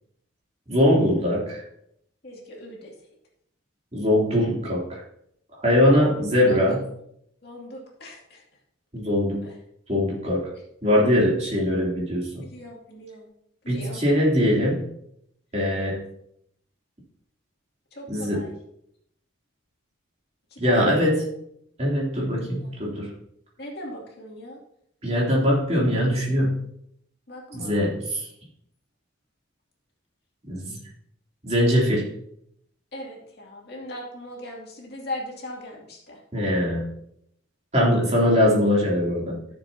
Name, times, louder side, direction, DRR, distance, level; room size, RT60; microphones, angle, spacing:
voice 1, 0.7-1.6 3.9-5.0 5.6-6.8 8.9-9.5 9.9-10.5 10.8-12.3 13.7-14.8 15.5-16.0 18.1-18.4 20.6-21.3 21.8-23.1 25.0-26.6 27.5-28.3 30.4-30.8 31.4-32.1 36.3-36.8 37.7-39.4, equal, 30° right, -4 dB, 3.0 m, -21 dB
voice 2, 2.2-2.9 6.5-6.6 7.4-8.4 12.5-13.3 13.6-14.0 17.9-18.5 20.5-21.2 22.6-22.8 23.6-24.6 27.3-27.8 32.9-36.2, left 1 dB, 50° left, -2 dB, 2.5 m, -38 dB
14.0 x 7.1 x 2.8 m, 0.72 s
head